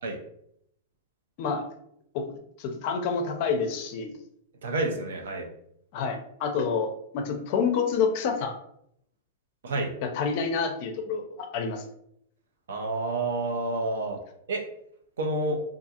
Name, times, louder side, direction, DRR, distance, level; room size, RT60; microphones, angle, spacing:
voice 1, 2.6-4.1 5.9-6.9 7.1-8.5 10.0-11.8, left 5 dB, 50° left, 5 dB, 0.4 m, -28 dB
voice 2, 4.6-5.5 9.6-9.9 12.7-14.2 14.5-14.6 15.2-15.6, right 2 dB, 85° right, 2 dB, 0.6 m, -29 dB
2.5 x 2.4 x 2.7 m, 0.72 s
hypercardioid pair, 135°, 0 cm